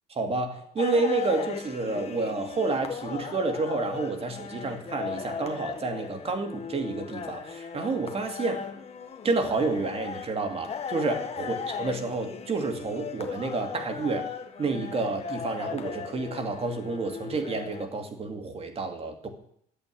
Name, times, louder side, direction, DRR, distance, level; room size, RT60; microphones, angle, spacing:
voice 1, 0.1-8.6 9.2-14.3 14.6-19.3, right 3 dB, 35° right, 6 dB, 2.6 m, -29 dB
sound 1, 0.8-17.8, left 6 dB, 40° left, 1.6 m, -37 dB
11.5 x 8.2 x 10.0 m, 0.67 s
cardioid pair, 110°, 17 cm